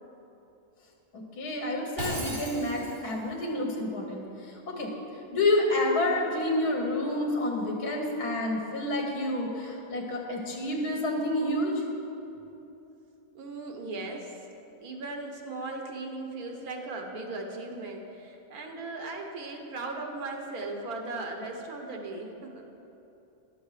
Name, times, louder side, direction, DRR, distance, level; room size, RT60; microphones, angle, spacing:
voice 1, 1.1-4.9 5.3-11.8, left 1 dB, 80° left, -1 dB, 1.6 m, -29 dB
Shatter, 2.0-3.2, right 1 dB, 55° right, 3.1 m, -35 dB
voice 2, 13.3-14.3 14.8-22.7, right 2 dB, 75° right, 2 dB, 1.5 m, -37 dB
11.5 x 7.0 x 4.8 m, 3.0 s
omnidirectional pair, 1.6 m